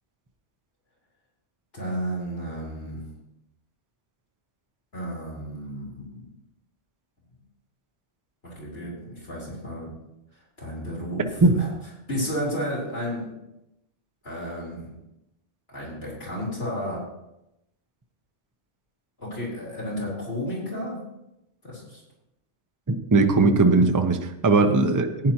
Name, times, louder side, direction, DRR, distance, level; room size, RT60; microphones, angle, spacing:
voice 1, 1.7-3.0 4.9-6.2 8.4-9.9 10.6-11.3 11.6-11.7 12.1-13.3 14.2-14.9 15.7-17.0 19.2-21.0 21.6-22.0 24.7-24.8, equal, 55° left, -5 dB, 4.1 m, -32 dB
voice 2, 22.9-25.3, right 3 dB, 20° right, 5 dB, 0.7 m, -19 dB
15.0 x 10.0 x 3.0 m, 0.87 s
omnidirectional pair, 1.2 m